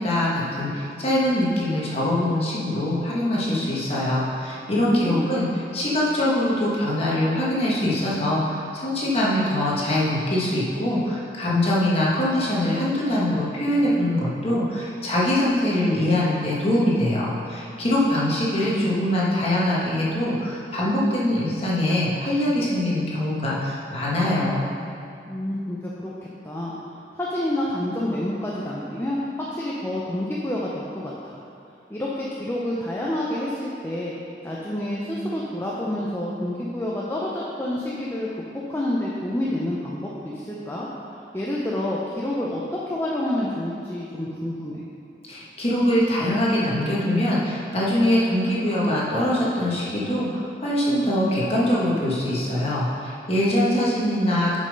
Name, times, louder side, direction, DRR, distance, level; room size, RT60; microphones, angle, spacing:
voice 1, 0.0-24.7 45.3-54.6, left 1 dB, 35° left, -7 dB, 1.4 m, -23 dB
voice 2, 4.7-5.3 25.3-26.7 27.2-29.2 29.5-31.4 31.9-34.2 34.4-38.3 38.7-40.9 41.3-44.8, left 1 dB, 15° left, -6 dB, 0.6 m, -28 dB
6.9 x 5.4 x 5.3 m, 2.6 s
head